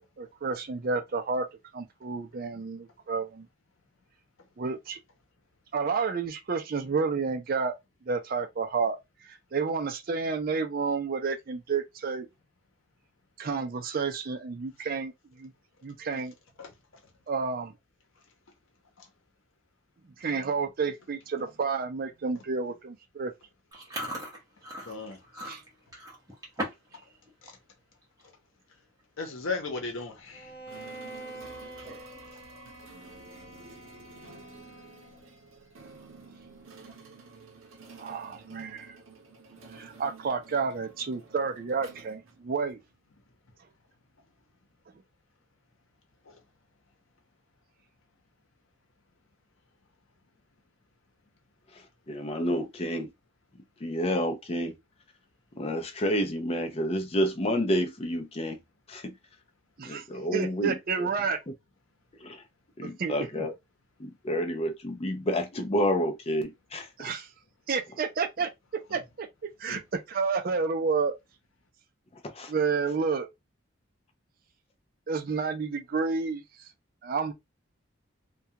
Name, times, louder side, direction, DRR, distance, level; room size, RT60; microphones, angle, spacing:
voice 1, 0.2-1.5 1.7-3.5 4.6-5.0 5.7-7.7 8.1-9.0 9.3-12.3 13.4-15.1 15.4-15.5 15.8-16.3 17.3-17.7 20.2-23.3 25.4-25.6 38.0-39.0 39.7-42.8 59.8-60.0 60.3-61.4 63.0-63.5 67.0-67.3 67.7-68.5 68.9-69.3 69.6-69.8 70.1-71.2 72.5-73.3 75.1-76.7 77.0-77.3, right 5 dB, 45° right, 0.4 m, -30 dB
voice 2, 16.6-17.0 19.0-19.1 24.8-25.2 27.4-27.5 28.2-28.3 29.2-30.6 34.2-34.3 46.2-46.4 69.7-69.8, left 4 dB, 75° left, 0.8 m, -37 dB
Chewing mastication, 23.7-27.0 27.3-27.6 28.0-28.3 29.0-29.1 29.3-29.7 30.1-30.2 31.6-32.2, right 1 dB, 15° right, 0.9 m, -38 dB
Bowed string instrument, 30.3-35.4, right 2 dB, 50° left, 1.2 m, -46 dB
sound 1, 30.7-42.9, right 4 dB, 80° right, 0.7 m, -51 dB
voice 3, 51.7-53.1 53.8-54.7 55.6-58.6 58.9-59.1 59.8-61.1 62.2-62.4 62.8-63.5 64.0-66.9 72.1-72.5, equal, 30° left, 0.5 m, -29 dB
2.3 x 2.3 x 2.8 m
head